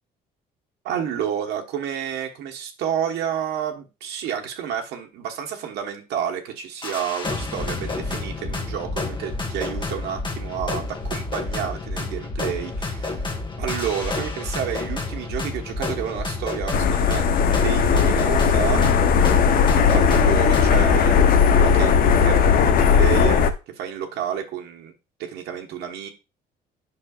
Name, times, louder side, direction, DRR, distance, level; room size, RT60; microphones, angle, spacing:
voice 1, 0.8-13.2 13.6-18.9 19.9-23.5 23.7-24.9 25.2-26.1, right 9 dB, 80° right, 1.3 m, -30 dB
sound 1, 6.8-21.0, left 3 dB, 30° left, 1.5 m, -30 dB
sound 2, 16.7-23.5, left 6 dB, 60° left, 0.7 m, -17 dB
8.7 x 6.1 x 2.4 m
cardioid pair, 110°, 17 cm